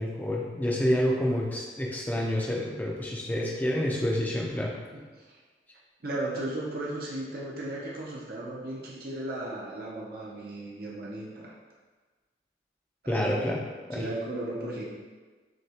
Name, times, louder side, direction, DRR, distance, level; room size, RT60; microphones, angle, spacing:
voice 1, 0.0-4.7 13.1-13.6 13.9-14.0, equal, 10° left, -2 dB, 0.5 m, -28 dB
voice 2, 4.9-5.2 6.0-11.5 13.0-13.4 13.9-14.9, right 1 dB, 55° right, -4 dB, 0.6 m, -35 dB
6.4 x 2.3 x 2.9 m, 1.4 s
head